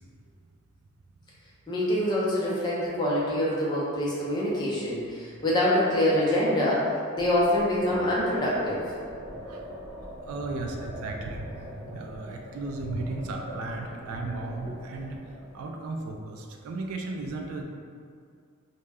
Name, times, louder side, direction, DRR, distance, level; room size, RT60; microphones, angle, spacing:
voice 1, 1.7-6.8 7.1-8.8, left 1 dB, 20° left, -7 dB, 0.4 m, -25 dB
sound 1, 7.2-15.7, equal, 25° right, 0.6 m, -42 dB
voice 2, 10.2-15.2 15.5-17.6, right 3 dB, 85° right, 2 dB, 0.3 m, -35 dB
2.1 x 2.1 x 3.4 m, 2.1 s
head